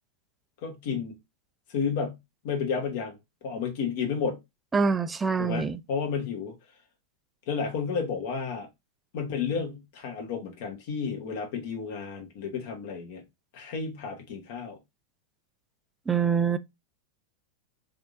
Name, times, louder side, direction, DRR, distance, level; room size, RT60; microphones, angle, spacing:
voice 1, 0.6-1.2 1.7-2.2 2.4-3.2 3.4-4.4 5.4-6.5 7.5-8.7 9.1-13.2 13.5-14.8, left 6 dB, 50° left, 1.4 m, -31 dB
voice 2, 4.7-5.8 16.1-16.6, right 5 dB, 15° right, 0.4 m, -25 dB
3.7 x 3.4 x 2.6 m
figure-of-eight pair, 90°, 0 cm